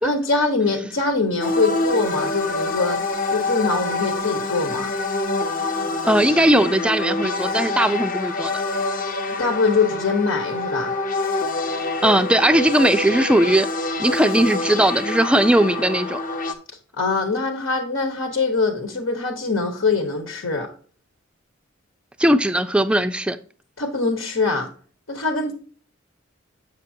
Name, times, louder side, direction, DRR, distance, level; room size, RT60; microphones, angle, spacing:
voice 1, 0.0-3.0 3.3-4.9 9.4-11.0 17.0-20.7 23.8-24.7 25.1-25.5, left 4 dB, 85° left, 1.3 m, -23 dB
sound 1, 1.4-16.5, left 2 dB, 40° left, 0.8 m, -26 dB
voice 2, 6.0-8.6 12.0-13.7 14.0-16.2 22.2-23.4, right 1 dB, 5° right, 0.4 m, -18 dB
7.5 x 6.6 x 2.7 m
head